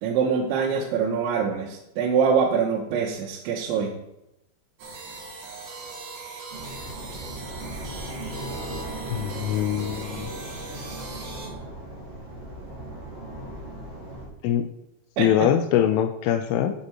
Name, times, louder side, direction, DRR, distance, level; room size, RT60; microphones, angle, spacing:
voice 1, 0.0-3.9 15.2-15.5, right 6 dB, 85° right, -2 dB, 3.4 m, -24 dB
sound 1, 4.8-11.5, right 3 dB, 55° right, 2.9 m, -40 dB
sound 2, 6.5-14.3, right 1 dB, 40° right, 3.1 m, -37 dB
voice 2, 9.1-10.3 14.4-14.6 15.2-16.7, left 10 dB, 90° left, 7 dB, 2.2 m, -23 dB
11.0 x 5.6 x 4.6 m, 0.86 s
omnidirectional pair, 5.2 m